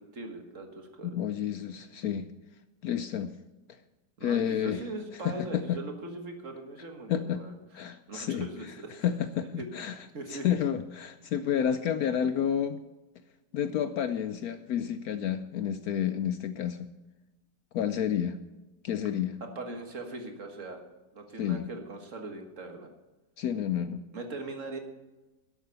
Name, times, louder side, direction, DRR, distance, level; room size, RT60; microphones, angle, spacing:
voice 1, 0.0-1.2 4.2-7.6 8.1-8.9 9.6-9.7 10.1-10.6 19.4-20.9 21.1-22.9 24.1-24.8, right 2 dB, 45° right, 4 dB, 1.8 m, -40 dB
voice 2, 1.0-2.3 2.8-3.3 4.2-4.8 5.2-5.8 7.1-7.4 7.7-10.0 10.3-12.8 13.5-16.9 17.7-18.4 18.8-19.4 21.4-21.7 23.4-24.0, left 9 dB, 70° left, 11 dB, 0.9 m, -30 dB
12.5 x 8.1 x 6.8 m, 1.1 s
omnidirectional pair, 1.9 m